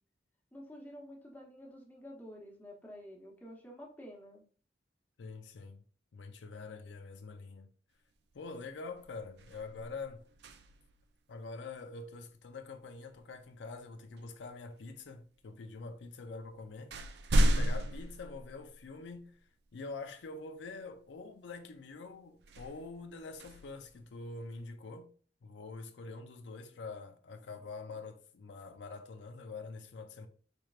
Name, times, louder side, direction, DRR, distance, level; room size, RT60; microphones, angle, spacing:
voice 1, 0.5-4.4, equal, 10° left, 1.0 m, -50 dB
voice 2, 5.2-5.8 6.1-7.7 8.3-10.2 11.3-17.0 17.4-19.4 19.7-25.1 25.4-30.3, left 3 dB, 80° left, 0.4 m, -45 dB
sound 1, 8.3-8.6 8.9-11.0 13.2-13.4 14.2-14.9 15.8-15.9 16.3-19.1 19.7-19.8 22.4-24.6, equal, 65° right, 0.4 m, -34 dB
4.3 x 3.2 x 2.4 m
head